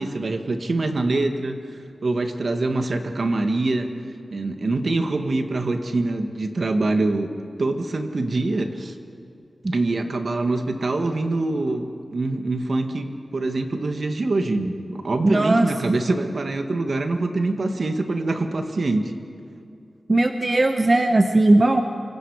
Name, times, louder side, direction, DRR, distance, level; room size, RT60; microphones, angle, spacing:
voice 1, 0.0-1.6 2.0-3.9 4.3-7.3 7.6-8.9 9.7-19.0, right 2 dB, 60° right, 5 dB, 1.8 m, -24 dB
voice 2, 15.2-15.7 20.1-21.8, right 2 dB, 35° right, 6 dB, 1.0 m, -18 dB
29.0 x 25.0 x 5.0 m, 2.6 s
wide cardioid pair, 75°, 0 cm